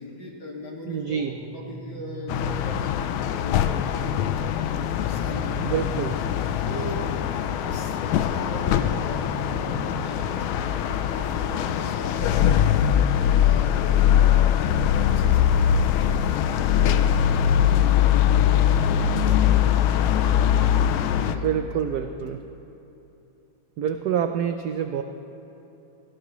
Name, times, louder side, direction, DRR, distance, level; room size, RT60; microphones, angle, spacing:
voice 1, 0.0-2.9 3.3-4.3 5.1-6.0 6.7-7.1 7.6-12.8 13.4-22.4, left 1 dB, 55° left, -3 dB, 2.7 m, -39 dB
voice 2, 0.9-1.3 5.6-6.2 21.2-22.4 23.8-25.0, right 8 dB, 75° right, 7 dB, 0.9 m, -27 dB
sound 1, 1.1-3.1 4.8-6.8 8.5-10.5, right 5 dB, 5° right, 1.0 m, -40 dB
sound 2, 2.3-21.4, left 9 dB, 80° left, 1.4 m, -22 dB
21.0 x 17.5 x 3.1 m, 2.9 s
omnidirectional pair, 2.3 m